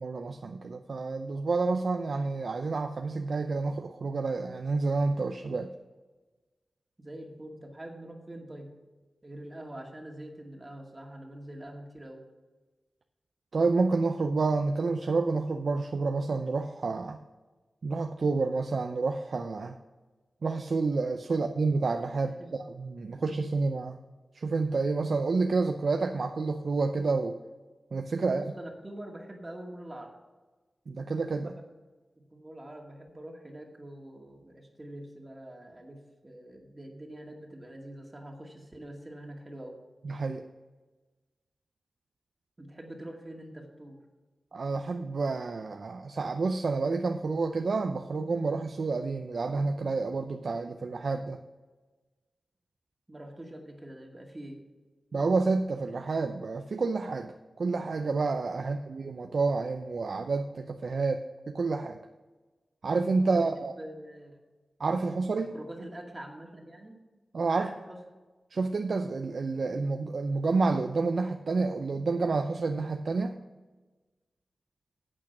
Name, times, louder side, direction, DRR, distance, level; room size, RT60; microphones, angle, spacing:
voice 1, 0.0-5.7 13.5-17.2 17.8-19.8 20.4-24.0 24.3-27.4 27.9-28.4 30.9-31.5 40.0-40.4 44.5-51.4 55.1-62.0 62.8-63.7 64.8-65.5 67.3-67.7 68.5-73.4, right 3 dB, 70° right, 6 dB, 0.6 m, -29 dB
voice 2, 7.0-8.7 9.2-12.2 21.3-21.4 22.2-22.6 23.1-23.2 28.2-30.1 31.4-31.7 32.3-39.8 42.6-44.0 53.1-54.6 58.6-58.8 63.6-64.4 65.5-67.0 67.5-68.0, right 1 dB, 25° right, 1 dB, 2.1 m, -45 dB
8.7 x 8.5 x 6.0 m, 1.2 s
wide cardioid pair, 70°, 0 cm